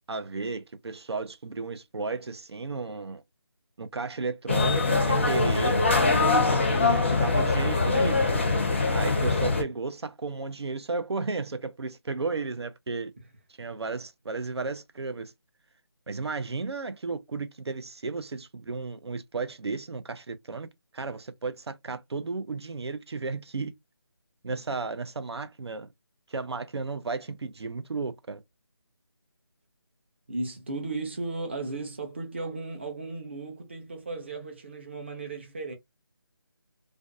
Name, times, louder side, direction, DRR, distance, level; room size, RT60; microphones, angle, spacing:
voice 1, 0.1-3.2 3.8-5.8 6.8-8.4 8.9-13.1 13.6-15.3 16.1-20.7 20.9-23.7 24.4-25.9 26.3-28.4, right 4 dB, 85° right, 0.5 m, -33 dB
sound 1, 4.5-9.6, left 3 dB, 30° left, 0.5 m, -23 dB
voice 2, 30.3-35.7, right 3 dB, 25° right, 0.5 m, -35 dB
2.5 x 2.2 x 2.4 m
figure-of-eight pair, 170°, 13 cm